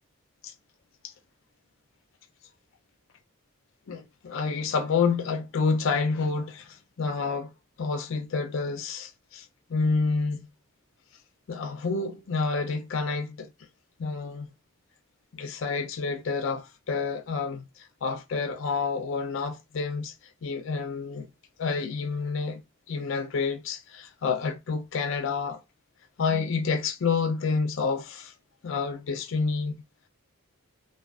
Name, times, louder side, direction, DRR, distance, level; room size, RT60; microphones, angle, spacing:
voice 1, 3.9-7.5 7.8-10.5 11.5-13.5 14.0-14.5 15.3-20.1 20.4-21.3 21.6-22.6 22.9-25.6 26.2-28.3 28.6-29.7, left 4 dB, 60° left, 0.4 m, -29 dB
2.3 x 2.3 x 2.3 m
head